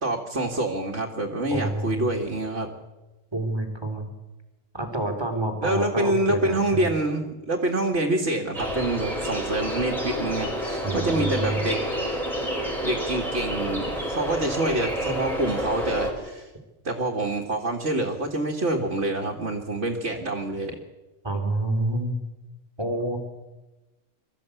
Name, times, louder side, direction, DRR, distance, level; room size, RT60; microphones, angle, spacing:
voice 1, 0.0-2.7 5.6-11.8 12.8-16.5 16.8-20.8, right 1 dB, 60° right, 0 dB, 2.2 m, -26 dB
voice 2, 1.5-2.1 3.3-4.1 4.7-6.9 10.8-11.6 21.2-22.1 22.8-23.2, right 2 dB, 20° right, 3 dB, 3.2 m, -28 dB
sound 1, 8.5-16.1, equal, ahead, 4.9 m, -29 dB
23.5 x 13.5 x 8.3 m, 1.1 s
omnidirectional pair, 1.3 m